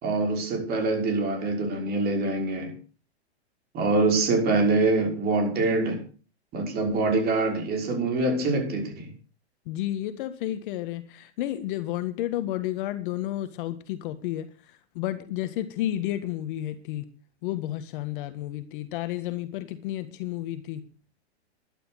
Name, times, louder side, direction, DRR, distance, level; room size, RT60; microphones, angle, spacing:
voice 1, 0.0-2.7 3.7-6.0 6.5-9.1, right 3 dB, 30° right, 5.7 m, -25 dB
voice 2, 9.6-14.5 14.9-17.1 17.4-20.8, left 13 dB, 50° left, 1.7 m, -31 dB
12.0 x 11.5 x 6.4 m
hypercardioid pair, 135°, 33 cm